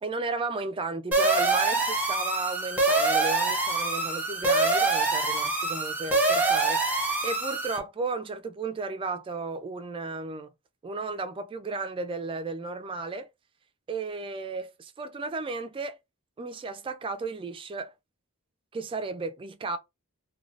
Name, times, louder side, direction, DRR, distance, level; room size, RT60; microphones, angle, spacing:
voice 1, 0.0-6.8 7.2-10.5 10.8-13.3 13.9-16.0 16.4-17.9 18.7-19.8, right 3 dB, 25° right, 0.3 m, -34 dB
sound 1, 1.1-7.8, right 3 dB, 5° right, 0.7 m, -25 dB
3.1 x 2.2 x 2.4 m
head